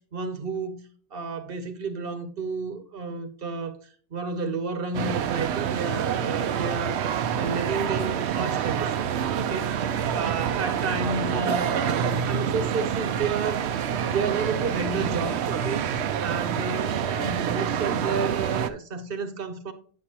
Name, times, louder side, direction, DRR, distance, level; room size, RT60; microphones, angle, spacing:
voice 1, 0.1-0.8 1.1-3.8 4.1-7.0 7.4-9.1 9.4-13.7 14.0-15.9 16.2-19.7, right 4 dB, 60° right, 1.1 m, -31 dB
sound 1, 4.9-18.7, right 8 dB, 80° right, 0.9 m, -27 dB
9.3 x 6.6 x 2.9 m
omnidirectional pair, 1.1 m